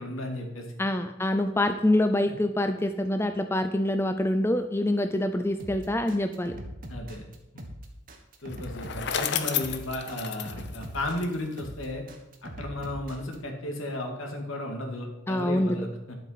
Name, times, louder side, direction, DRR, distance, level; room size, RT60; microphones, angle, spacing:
voice 1, 0.0-0.7 6.9-7.2 8.4-12.0 12.4-16.2, left 1 dB, 75° left, 2 dB, 2.4 m, -34 dB
voice 2, 0.8-6.6 15.3-15.8, left 1 dB, 10° left, 8 dB, 0.5 m, -25 dB
sound 1, 5.6-13.4, equal, 40° right, 1.4 m, -41 dB
Bicycle, 8.5-11.7, left 8 dB, 55° left, 0.8 m, -32 dB
11.0 x 7.8 x 5.8 m, 0.97 s
head